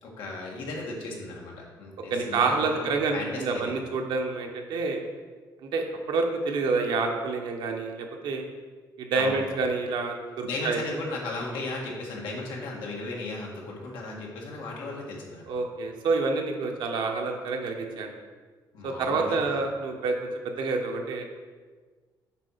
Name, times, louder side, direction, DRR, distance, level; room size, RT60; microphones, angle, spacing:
voice 1, 0.0-3.7 9.1-9.4 10.4-15.5 18.7-19.5, left 2 dB, 90° left, -2 dB, 1.7 m, -36 dB
voice 2, 2.1-5.0 5.6-8.5 9.0-10.8 15.5-18.1 18.8-21.3, right 4 dB, 75° right, 2 dB, 1.1 m, -28 dB
7.3 x 4.2 x 5.6 m, 1.4 s
cardioid pair, 125°, 8 cm